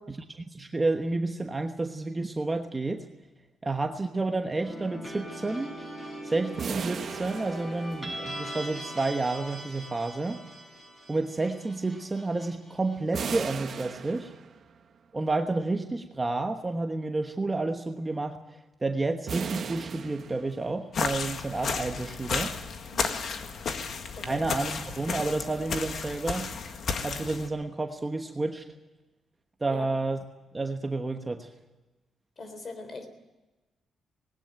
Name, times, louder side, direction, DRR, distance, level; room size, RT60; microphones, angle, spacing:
voice 1, 0.1-3.1 3.6-5.7 6.2-10.4 11.1-14.3 15.1-22.5 24.2-26.5 27.0-28.6 29.6-30.2 30.5-31.5, right 3 dB, 15° right, 5 dB, 1.2 m, -30 dB
sound 1, 4.6-13.4, right 1 dB, 15° left, 7.1 m, -41 dB
sound 2, 6.6-8.5 13.1-14.8 19.3-20.9, right 6 dB, 45° right, 1.2 m, -37 dB
sound 3, 20.9-27.5, left 5 dB, 50° left, 1.8 m, -33 dB
voice 2, 32.4-33.1, left 3 dB, 30° left, 9 dB, 3.7 m, -41 dB
20.0 x 18.5 x 9.1 m, 1.1 s
cardioid pair, 160°, 0 cm